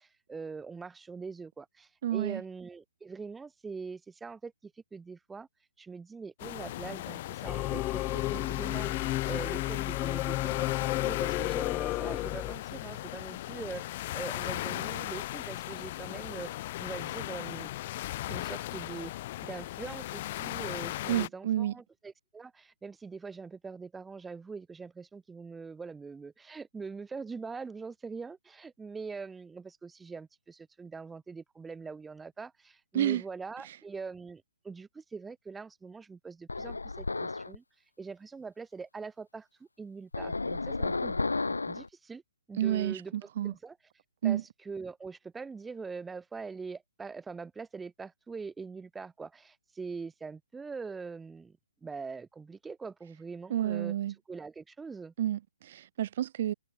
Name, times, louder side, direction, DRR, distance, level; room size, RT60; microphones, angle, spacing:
voice 1, 0.0-5.5 5.8-8.9 9.2-10.7 10.9-16.5 16.8-17.7 18.3-37.6 38.0-41.2 41.7-42.2 42.5-43.1 43.4-43.8 44.2-53.9 54.3-55.1, right 4 dB, 10° right, 3.3 m, -43 dB
voice 2, 2.0-2.4 21.1-21.7 32.9-33.2 33.6-33.8 42.6-43.5 44.2-44.4 53.5-54.1 55.2-56.5, right 12 dB, 45° right, 0.8 m, -30 dB
sound 1, 6.4-21.3, left 15 dB, 40° left, 0.5 m, -37 dB
Singing / Musical instrument, 7.4-12.6, left 17 dB, 20° left, 1.5 m, -32 dB
sound 2, 36.5-37.6 40.1-41.9, left 3 dB, 80° left, 3.3 m, -32 dB
figure-of-eight pair, 130°, 0 cm